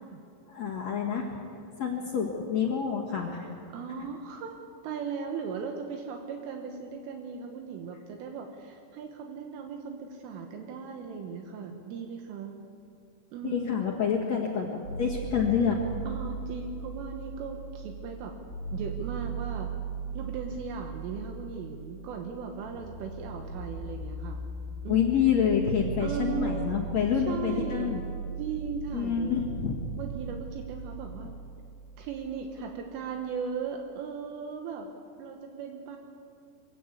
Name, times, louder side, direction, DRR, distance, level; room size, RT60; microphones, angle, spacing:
voice 1, 0.5-1.3 1.8-3.5 13.4-15.8 24.9-28.1 28.9-29.8, left 7 dB, 70° left, -1 dB, 1.6 m, -27 dB
voice 2, 3.7-4.6 4.8-12.6 13.3-13.9 16.1-18.3 18.7-19.7 20.1-24.4 24.8-25.4 26.0-26.7 27.3-27.9 28.4-29.4 30.0-31.4 32.0-34.9 35.2-36.0, right 6 dB, 75° right, 3 dB, 3.7 m, -37 dB
sound 1, 14.8-32.8, right 4 dB, 60° right, 4.2 m, -38 dB
23.5 x 16.0 x 8.5 m, 2.4 s
omnidirectional pair, 5.9 m